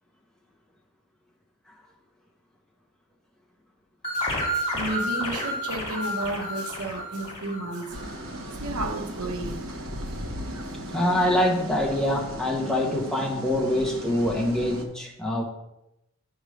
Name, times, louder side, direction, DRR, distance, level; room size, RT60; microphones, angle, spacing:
sound 1, 4.0-8.4, equal, 25° left, 2.4 m, -31 dB
voice 1, 4.1-8.0 8.5-9.7 10.0-10.2 10.6-10.7, right 2 dB, 90° right, 6 dB, 0.9 m, -33 dB
sound 2, 7.9-14.8, equal, 65° right, 1.1 m, -36 dB
voice 2, 10.9-15.4, left 1 dB, 5° left, -3 dB, 1.2 m, -25 dB
8.4 x 3.5 x 6.3 m, 0.87 s
head